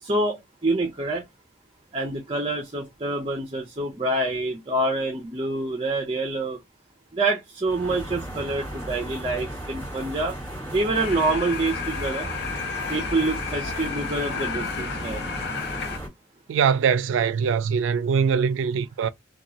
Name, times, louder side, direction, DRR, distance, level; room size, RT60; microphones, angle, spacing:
voice 1, 0.0-1.2 1.9-6.6 7.1-10.4 10.7-12.3 12.9-15.2, right 2 dB, 30° right, 0.5 m, -26 dB
sound 1, 7.7-16.1, right 1 dB, 15° left, 1.8 m, -35 dB
sound 2, 10.9-16.0, left 5 dB, 60° left, 0.5 m, -32 dB
voice 2, 16.5-19.1, right 6 dB, 90° right, 0.3 m, -22 dB
3.0 x 2.2 x 2.7 m
head